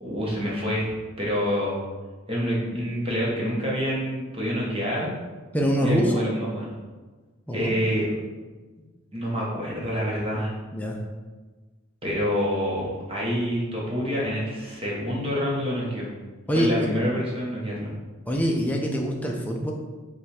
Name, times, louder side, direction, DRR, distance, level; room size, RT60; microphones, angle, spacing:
voice 1, 0.0-1.8 2.3-5.1 5.8-6.6 7.5-8.1 9.1-10.5 12.0-16.1 16.5-17.9, equal, 25° right, -4 dB, 0.9 m, -27 dB
voice 2, 5.5-6.2 7.5-7.8 10.7-11.0 16.5-16.9 18.3-19.7, equal, 5° left, 0 dB, 0.4 m, -24 dB
4.9 x 2.3 x 4.2 m, 1.3 s
head